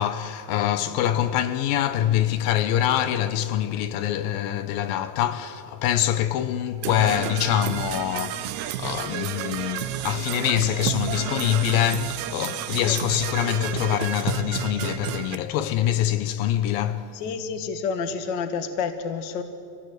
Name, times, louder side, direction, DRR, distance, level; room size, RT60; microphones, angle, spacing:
voice 1, 0.0-17.1, left 11 dB, 90° left, 2.6 m, -25 dB
Percussion / Brass instrument, 6.8-15.3, right 12 dB, 85° right, 1.6 m, -31 dB
voice 2, 17.1-19.4, left 5 dB, 55° left, 1.3 m, -29 dB
25.5 x 17.0 x 8.0 m
omnidirectional pair, 4.0 m